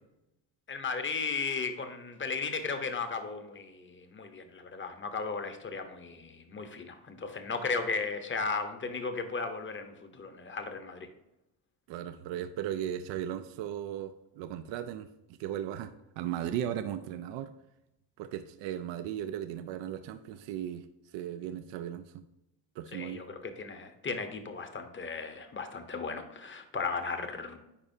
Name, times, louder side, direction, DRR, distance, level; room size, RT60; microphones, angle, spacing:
voice 1, 0.7-11.1 22.9-27.6, left 4 dB, 25° left, 7 dB, 1.0 m, -35 dB
voice 2, 11.9-17.5 18.2-20.9 21.1-22.2 22.8-23.3, right 10 dB, 70° right, 9 dB, 0.6 m, -37 dB
10.0 x 4.3 x 2.7 m, 0.91 s
cardioid pair, 100°, 45 cm